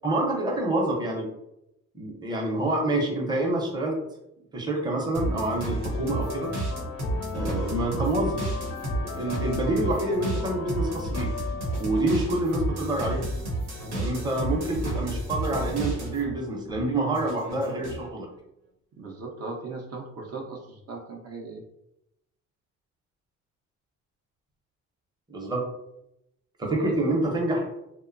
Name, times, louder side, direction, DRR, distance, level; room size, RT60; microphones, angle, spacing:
voice 1, 0.0-1.3 1.9-4.0 4.5-6.5 7.3-8.4 9.0-11.3 11.8-13.3 13.9-18.3 25.3-25.7 26.6-27.7, right 2 dB, 15° right, 0 dB, 0.6 m, -27 dB
sound 1, 5.1-16.3 16.7-18.1, right 1 dB, 90° right, 0.9 m, -31 dB
sound 2, 5.5-12.5, left 5 dB, 55° left, 0.4 m, -39 dB
voice 2, 19.0-21.6, right 3 dB, 55° right, 0 dB, 0.5 m, -38 dB
2.8 x 2.1 x 2.5 m, 0.84 s
cardioid pair, 90°, 30 cm